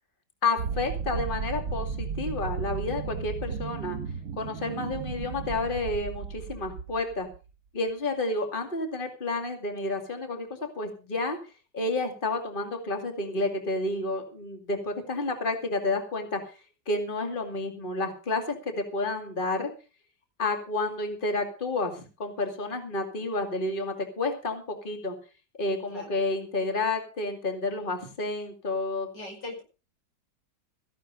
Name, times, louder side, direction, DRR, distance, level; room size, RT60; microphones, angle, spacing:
voice 1, 0.4-4.0 4.4-7.3 7.7-11.4 11.7-16.6 16.9-19.7 20.4-25.1 25.6-29.1, left 2 dB, 30° left, 5 dB, 2.5 m, -30 dB
sound 1, 0.6-7.4, right 6 dB, 60° right, 1.5 m, -34 dB
voice 2, 25.9-26.2 29.1-29.6, left 2 dB, 85° left, 2 dB, 5.9 m, -40 dB
15.0 x 11.0 x 5.1 m, 0.34 s
omnidirectional pair, 1.9 m